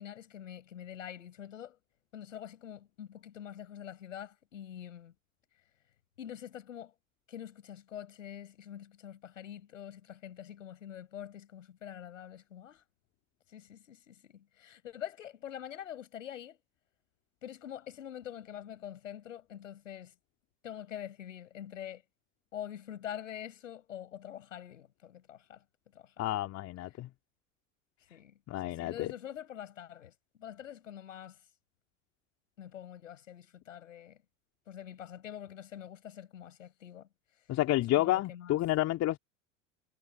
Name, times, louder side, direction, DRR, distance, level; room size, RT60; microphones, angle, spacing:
voice 1, 0.0-1.8 2.1-5.1 6.2-6.9 7.3-12.8 13.5-16.6 17.4-20.1 20.6-22.0 22.5-25.6 25.9-26.1 28.1-28.4 28.6-30.1 30.4-31.4 32.6-34.2 34.7-37.1 38.0-38.6, left 10 dB, 75° left, 5.8 m, -45 dB
voice 2, 26.2-27.1 28.5-29.1 37.5-39.2, left 15 dB, 40° left, 2.8 m, -30 dB
figure-of-eight pair, 75°, 39 cm